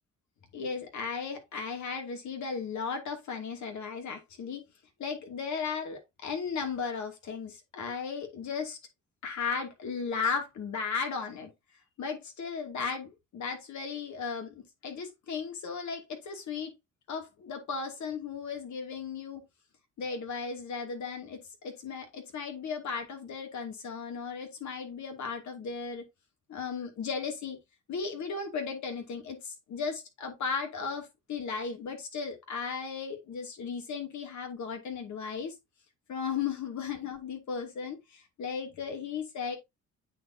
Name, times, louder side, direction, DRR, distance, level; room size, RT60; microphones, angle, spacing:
voice 1, 0.5-4.6 5.0-8.8 9.2-11.5 12.0-16.7 17.1-19.4 20.0-26.0 26.5-27.6 27.9-35.5 36.1-39.6, left 5 dB, 70° left, 2.7 m, -36 dB
9.0 x 4.7 x 2.8 m
cardioid pair, 90°, 30 cm